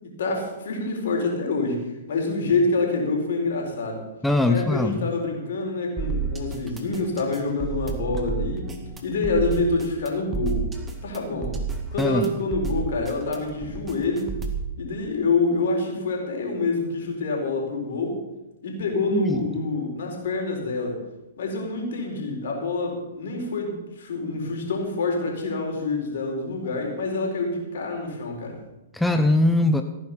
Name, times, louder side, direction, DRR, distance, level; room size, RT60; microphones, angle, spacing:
voice 1, 0.0-4.0 4.4-8.7 9.0-10.6 11.0-11.6 11.9-14.3 14.8-18.2 18.6-21.0 21.4-28.6, left 3 dB, 65° left, 1 dB, 4.4 m, -26 dB
voice 2, 4.2-5.1 12.0-12.3 19.1-19.4 28.9-29.8, left 2 dB, 5° left, 6 dB, 0.9 m, -21 dB
sound 1, 6.0-14.7, right 5 dB, 15° right, 2.1 m, -31 dB
16.5 x 9.6 x 5.7 m, 1.0 s
figure-of-eight pair, 115°, 0 cm